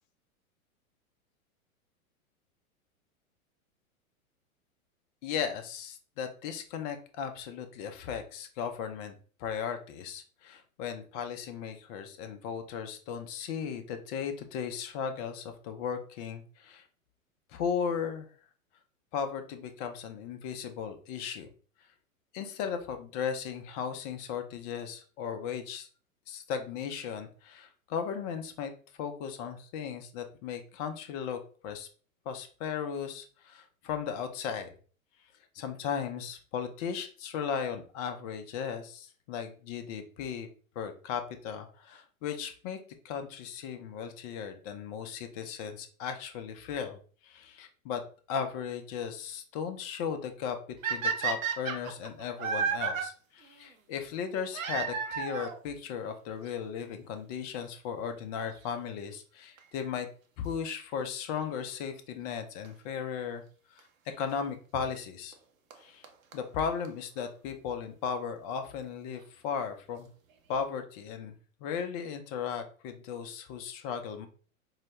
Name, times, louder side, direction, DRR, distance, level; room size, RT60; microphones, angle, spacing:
voice 1, 5.2-9.1 9.4-16.8 17.5-18.3 19.1-21.5 22.3-25.9 26.3-28.7 29.0-31.9 32.3-34.7 35.5-40.5 40.8-42.8 43.0-50.6 50.8-60.1 60.4-63.4 63.7-63.9 64.2-65.3 65.8-66.0 66.3-70.1 70.5-71.3 71.6-74.3, left 7 dB, 30° left, 7 dB, 0.5 m, -36 dB
sound 1, 50.8-53.0 54.5-55.6 56.5-56.6 57.3-57.4 57.6-57.7 59.6-59.8 62.6-62.7 63.8-63.9 65.3-65.4 65.7-65.8 66.0-66.1 66.3-66.4 66.6-66.7 66.8-66.9 67.2-67.3, right 6 dB, 65° right, 0.7 m, -32 dB
4.6 x 2.1 x 2.9 m, 0.41 s
figure-of-eight pair, 100°, 43 cm